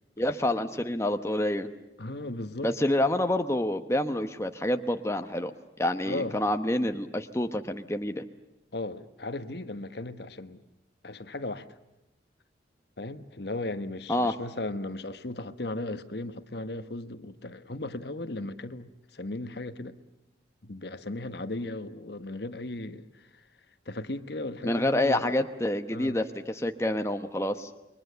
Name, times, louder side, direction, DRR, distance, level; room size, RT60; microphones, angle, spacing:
voice 1, 0.2-1.7 2.6-5.5 5.8-8.2 14.1-14.3 24.6-27.7, left 1 dB, 15° left, 1.0 m, -27 dB
voice 2, 2.0-2.7 6.0-6.4 8.7-10.6 11.0-11.8 13.0-20.0 20.6-23.4 23.9-25.3 25.9-26.2, left 2 dB, 60° left, 1.2 m, -36 dB
28.5 x 23.0 x 6.9 m
head